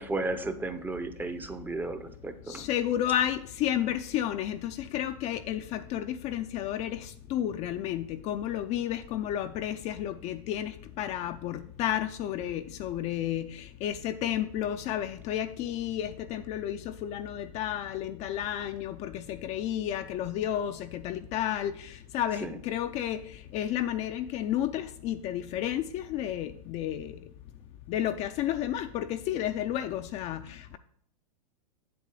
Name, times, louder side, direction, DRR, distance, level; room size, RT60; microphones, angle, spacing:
voice 1, 0.0-2.6 22.4-22.6, right 2 dB, 10° right, 9 dB, 0.6 m, -34 dB
voice 2, 2.5-27.2 27.9-30.8, left 11 dB, 35° left, 8 dB, 0.4 m, -32 dB
7.9 x 7.6 x 3.7 m, 0.63 s
hypercardioid pair, 125°, 20 cm